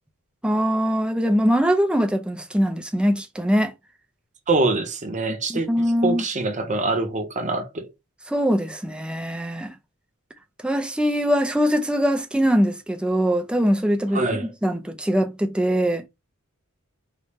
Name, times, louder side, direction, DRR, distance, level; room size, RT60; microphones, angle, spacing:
voice 1, 0.4-3.7 5.5-6.2 8.3-9.7 10.6-16.1, equal, 5° right, 0.5 m, -22 dB
voice 2, 4.5-5.7 6.0-7.9 14.1-14.5, right 2 dB, 35° right, 0.8 m, -24 dB
4.1 x 2.2 x 3.5 m
head